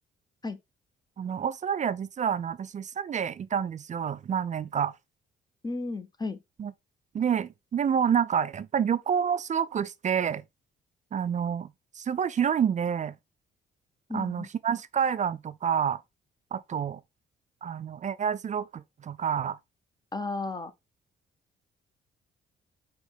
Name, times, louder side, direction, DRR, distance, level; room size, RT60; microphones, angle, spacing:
voice 1, 1.2-4.9 6.6-6.7 7.1-10.4 11.1-11.7 12.0-13.1 14.1-16.0 16.5-17.0 17.6-19.6, right 8 dB, 35° right, 0.4 m, -28 dB
voice 2, 5.6-6.4 14.1-14.5 20.1-20.7, left 3 dB, 20° left, 0.7 m, -33 dB
4.9 x 3.1 x 3.5 m
cardioid pair, 90°, 20 cm